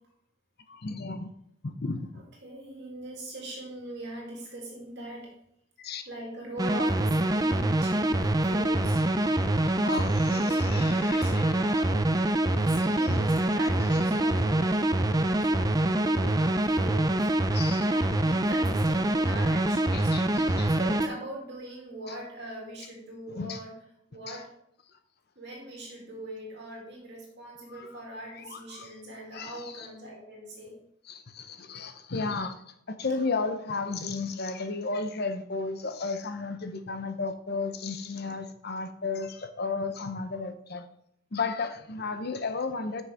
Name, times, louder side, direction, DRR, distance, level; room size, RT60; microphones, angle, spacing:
voice 1, 0.7-1.3 1.6-2.1 5.8-6.0 9.2-9.3 9.8-11.9 13.1-13.2 17.5-17.9 19.9-20.7 23.4-23.6 24.3-24.4 27.7-27.9 28.4-28.9 29.3-29.9 31.1-32.6 33.0-40.8 41.3-43.0, left 4 dB, 50° left, 0.8 m, -34 dB
voice 2, 2.1-5.3 6.1-9.0 9.9-12.1 12.6-17.3 17.8-20.2 20.7-23.7 24.1-24.5 25.4-30.8, right 1 dB, 55° right, 2.8 m, -41 dB
sound 1, 6.6-21.1, right 1 dB, 15° right, 0.5 m, -25 dB
9.6 x 6.3 x 3.5 m
head